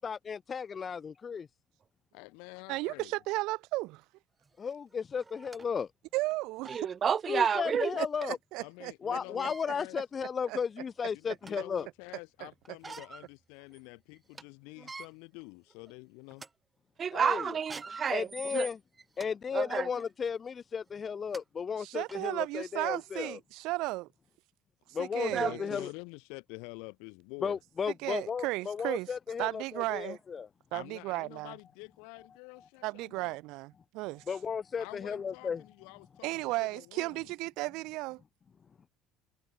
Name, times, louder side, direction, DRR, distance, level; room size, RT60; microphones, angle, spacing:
voice 1, 0.0-1.5 4.6-5.9 7.3-8.4 9.0-11.9 17.1-17.6 18.1-18.8 19.2-23.4 24.9-25.9 27.4-30.5 34.3-35.6, left 6 dB, 30° left, 1.2 m, -34 dB
voice 2, 2.1-3.1 8.6-10.0 11.1-16.4 25.3-27.6 30.7-33.4 34.8-37.2, left 33 dB, 85° left, 5.0 m, -47 dB
voice 3, 2.7-4.0 6.1-6.8 8.0-9.2 10.5-10.6 12.4-12.5 21.8-24.1 25.0-25.7 28.0-29.1 29.4-30.2 30.7-31.5 32.8-34.2 36.2-38.2, right 21 dB, 75° right, 1.5 m, -35 dB
sound 1, 4.5-4.6 5.2-5.7 6.2-6.3 6.6-6.9 8.2-8.3 9.2-9.7 10.4-10.5 11.0-11.7 12.6-13.3 13.7-13.8 14.2-14.4 14.8-15.1 15.7-15.9 16.3-16.5 17.5-19.3 19.9-20.1 20.9-21.0 21.3-21.4 22.1-22.2, right 4 dB, 20° right, 5.6 m, -46 dB
voice 4, 6.7-7.9 17.0-18.3 18.5-18.7 19.5-19.9 25.3-25.5, right 7 dB, 35° right, 0.7 m, -29 dB
cardioid pair, 120°, 0 cm